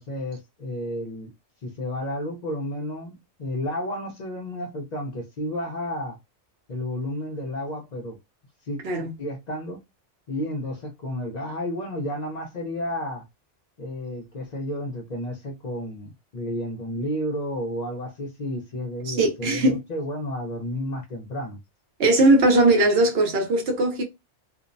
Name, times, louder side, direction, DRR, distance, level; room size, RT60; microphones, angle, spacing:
voice 1, 0.0-1.3 1.6-6.2 6.7-8.2 8.6-8.8 9.2-9.8 10.3-13.2 13.8-21.6, left 1 dB, 55° left, 0.5 m, -31 dB
voice 2, 19.1-19.8 22.0-24.0, right 2 dB, 60° right, 0.9 m, -19 dB
2.5 x 2.0 x 2.5 m
omnidirectional pair, 1.2 m